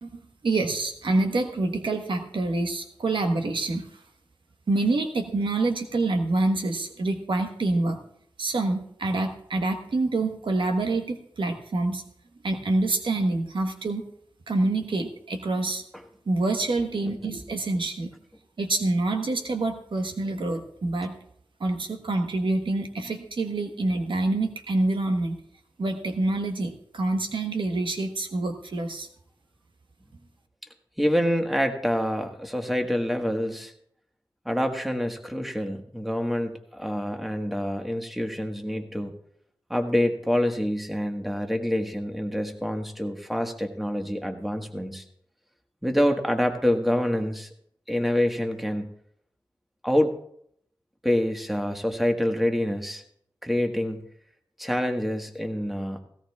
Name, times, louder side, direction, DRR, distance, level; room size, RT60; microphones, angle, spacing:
voice 1, 0.0-4.0 4.7-8.0 8.4-12.0 12.4-14.0 14.5-15.8 16.3-18.1 18.6-21.1 21.6-25.4 25.8-29.1, right 2 dB, 80° right, 5 dB, 1.3 m, -26 dB
voice 2, 31.0-33.7 34.4-39.1 39.7-45.0 45.8-47.5 47.9-48.9 49.8-50.1 51.0-53.0 53.4-54.0 54.6-56.0, equal, ahead, 4 dB, 1.5 m, -26 dB
17.0 x 16.5 x 2.4 m, 0.69 s
wide cardioid pair, 55°, 8 cm